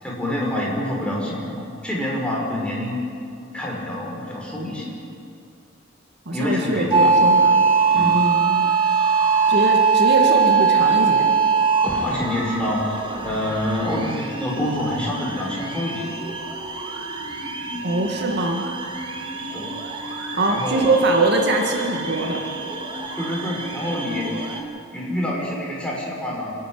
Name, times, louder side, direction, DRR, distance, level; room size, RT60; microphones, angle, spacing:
voice 1, 0.0-3.0 3.5-4.9 6.3-7.1 7.9-8.2 11.8-13.0 13.2-16.1 17.7-17.8 19.5-19.7 20.5-20.9 23.2-24.6 24.9-26.5, left 1 dB, 5° left, -4 dB, 5.4 m, -27 dB
voice 2, 6.3-8.7 9.5-11.3 17.8-18.6 20.3-22.4, right 2 dB, 55° right, 2 dB, 2.0 m, -22 dB
sound 1, 6.9-24.6, right 5 dB, 25° right, 2.1 m, -22 dB
28.5 x 10.5 x 9.6 m, 2.5 s
head